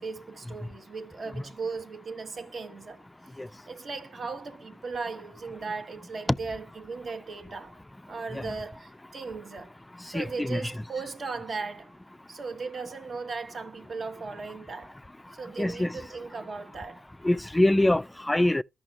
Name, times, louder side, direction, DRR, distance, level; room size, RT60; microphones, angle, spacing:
voice 1, 0.0-3.0 3.7-7.8 8.1-9.7 10.1-11.9 12.3-15.0 15.4-17.0, right 4 dB, 55° right, 1.1 m, -37 dB
voice 2, 10.1-10.8 15.6-16.0 17.2-18.6, left 1 dB, 15° left, 0.4 m, -25 dB
13.5 x 5.5 x 2.4 m
supercardioid pair, 50°, 0 cm